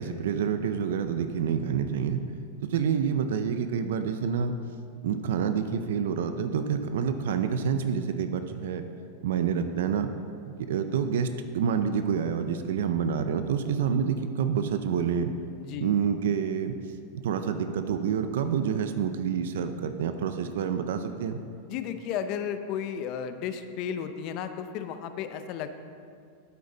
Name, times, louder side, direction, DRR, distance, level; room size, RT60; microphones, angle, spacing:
voice 1, 0.0-2.2 2.7-4.5 5.0-8.9 9.2-10.1 10.6-15.3 15.8-17.0 17.2-21.4, right 7 dB, 80° right, 8 dB, 0.5 m, -28 dB
voice 2, 15.6-15.9 21.7-25.7, left 8 dB, 45° left, 9 dB, 0.5 m, -33 dB
8.5 x 8.2 x 3.9 m, 2.3 s
supercardioid pair, 140°, 0 cm